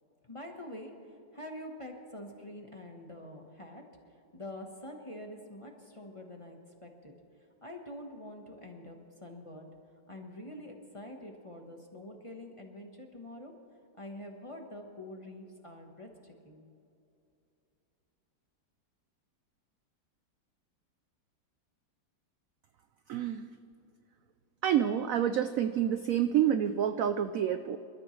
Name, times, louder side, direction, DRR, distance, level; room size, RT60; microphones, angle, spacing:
voice 1, 0.2-0.9 1.3-3.8 4.3-7.1 7.6-9.7 10.1-13.5 14.0-16.6, left 1 dB, 20° left, 2 dB, 1.1 m, -46 dB
voice 2, 23.1-23.5 24.6-27.8, right 9 dB, 70° right, 10 dB, 0.8 m, -28 dB
26.5 x 13.0 x 3.2 m, 2.7 s
omnidirectional pair, 1.9 m